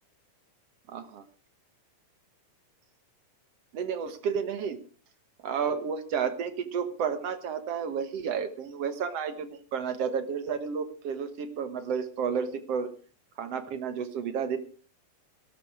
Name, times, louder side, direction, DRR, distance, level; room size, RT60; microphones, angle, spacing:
voice 1, 0.9-1.2 3.7-4.8 5.4-12.9 13.4-14.6, right 6 dB, 60° right, 10 dB, 2.0 m, -31 dB
17.0 x 13.0 x 4.8 m, 0.38 s
omnidirectional pair, 3.8 m